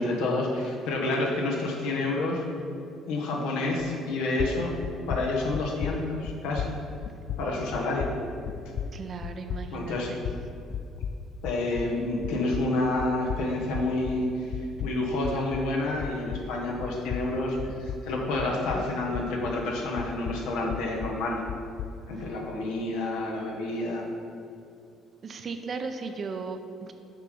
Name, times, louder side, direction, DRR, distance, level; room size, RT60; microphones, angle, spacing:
voice 1, 0.0-2.4 3.1-4.7 5.1-6.7 7.4-8.1 9.7-10.1 11.4-14.3 14.8-21.4 22.1-24.1, left 2 dB, 85° left, -1 dB, 1.2 m, -29 dB
sound 1, 3.8-4.1 4.4-12.0 12.2-16.6 16.8-19.7 20.0-22.0, left 7 dB, 60° left, 0.3 m, -36 dB
voice 2, 8.9-10.2 25.2-26.9, right 4 dB, 40° right, 7 dB, 0.6 m, -36 dB
6.8 x 4.1 x 4.9 m, 2.5 s
cardioid pair, 100°, 0 cm